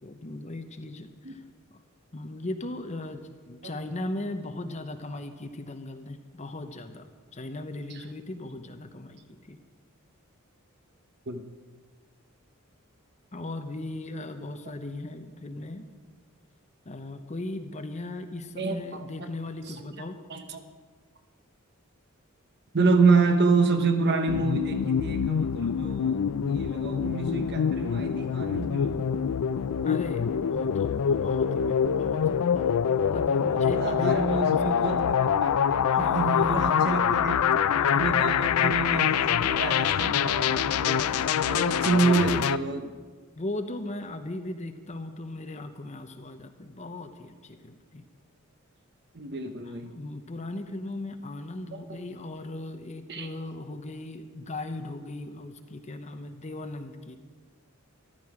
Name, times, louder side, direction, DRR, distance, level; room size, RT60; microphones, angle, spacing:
voice 1, 0.0-1.4 1.7-1.8 2.1-9.6 13.3-15.9 16.8-20.2 29.8-34.8 35.9-37.0 37.7-38.4 40.7-41.4 43.4-48.1 49.6-57.2, left 2 dB, 30° left, 7 dB, 0.8 m, -38 dB
voice 2, 18.6-19.0 20.3-20.6 22.7-29.0 33.2-37.5 37.9-42.9 49.1-49.9 51.7-52.0 53.1-53.3, right 4 dB, 50° right, 7 dB, 1.0 m, -28 dB
sound 1, 24.3-42.6, left 8 dB, 85° left, 0.4 m, -25 dB
14.0 x 12.5 x 4.9 m, 1.5 s
head